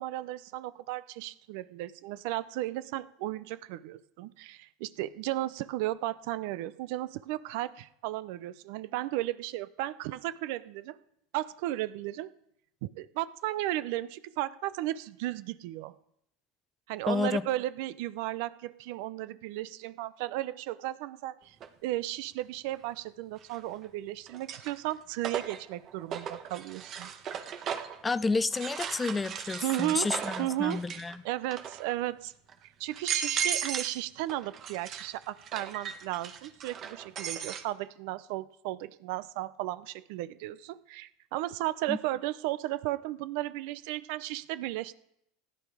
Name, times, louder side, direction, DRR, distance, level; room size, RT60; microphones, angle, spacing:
voice 1, 0.0-11.0 11.3-12.3 12.8-16.0 16.9-21.6 21.8-27.1 29.6-30.1 30.4-30.8 31.2-32.3 32.8-44.9, right 15 dB, 65° right, 0.7 m, -34 dB
voice 2, 17.1-17.4 28.0-31.2 41.9-42.0, left 3 dB, 15° left, 0.6 m, -30 dB
sound 1, 21.6-21.7 23.4-23.9 24.3-28.0 28.5-31.1 31.4-31.9 32.5-32.6 32.9-34.0 34.3-37.6, right 8 dB, 40° right, 1.4 m, -36 dB
16.0 x 11.0 x 5.0 m
supercardioid pair, 105°, 0 cm